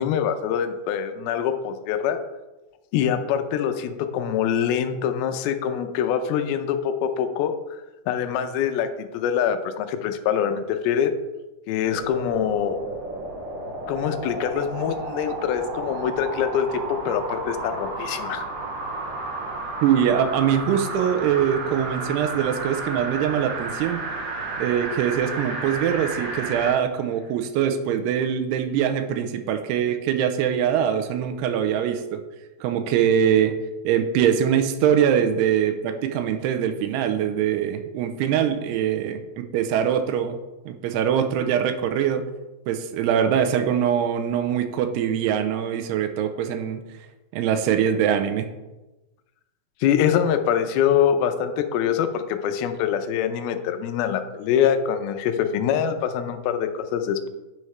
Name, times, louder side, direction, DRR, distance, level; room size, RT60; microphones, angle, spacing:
voice 1, 0.0-2.2 2.9-7.8 8.1-11.1 11.7-12.8 13.9-18.5 49.8-57.3, left 8 dB, 80° left, 8 dB, 2.3 m, -24 dB
sound 1, 11.8-26.8 27.2-27.3, right 3 dB, 55° right, 3.2 m, -32 dB
voice 2, 19.8-24.0 24.6-32.2 32.6-33.6 33.8-40.4 40.7-42.2 42.7-46.8 47.3-48.5, right 9 dB, 80° right, 8 dB, 2.7 m, -23 dB
10.5 x 6.5 x 3.2 m, 1.1 s
omnidirectional pair, 4.9 m